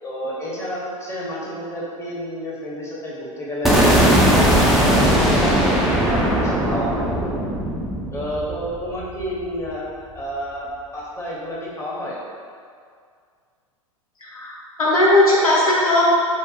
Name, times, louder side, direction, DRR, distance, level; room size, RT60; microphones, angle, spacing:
voice 1, 0.0-3.9 4.2-7.0 8.1-9.8 10.1-12.2, equal, 15° left, -6 dB, 0.8 m, -30 dB
sound 1, 3.6-9.7, equal, ahead, 0.4 m, -18 dB
voice 2, 14.2-16.0, left 1 dB, 85° left, -5 dB, 0.7 m, -17 dB
2.6 x 2.0 x 3.7 m, 2.1 s
hypercardioid pair, 95°, 18 cm